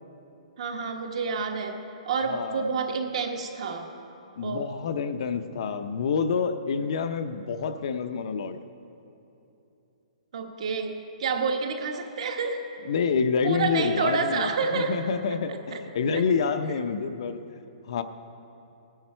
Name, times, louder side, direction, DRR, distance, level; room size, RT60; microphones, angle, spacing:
voice 1, 0.6-1.8 2.0-3.9 4.4-4.7 10.3-12.6 13.4-14.9 15.3-15.8 16.1-16.2, right 4 dB, 55° right, 4 dB, 1.3 m, -29 dB
voice 2, 2.3-2.6 4.4-8.6 12.9-17.4 17.9-18.0, left 5 dB, 50° left, 9 dB, 0.6 m, -27 dB
18.0 x 10.5 x 4.4 m, 3.0 s
hypercardioid pair, 170°, 4 cm